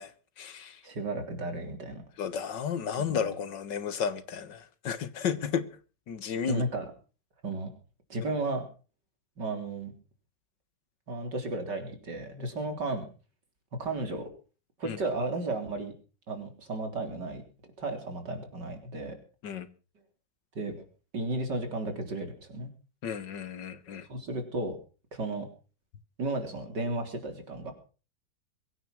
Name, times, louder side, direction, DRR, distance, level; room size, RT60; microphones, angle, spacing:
voice 1, 0.0-0.8 2.2-5.8 6.1-6.6 14.9-15.0 19.4-19.7 23.0-24.1, left 7 dB, 85° left, 2.0 m, -33 dB
voice 2, 0.8-2.0 3.0-3.3 6.5-6.9 7.4-7.7 8.1-8.7 9.4-9.9 11.1-13.1 13.8-14.3 14.8-15.9 16.3-17.4 17.8-19.2 20.6-20.8 21.1-22.7 24.1-24.8 25.1-25.5 26.2-27.7, right 2 dB, 75° right, 4.3 m, -33 dB
22.5 x 9.8 x 6.1 m
omnidirectional pair, 1.9 m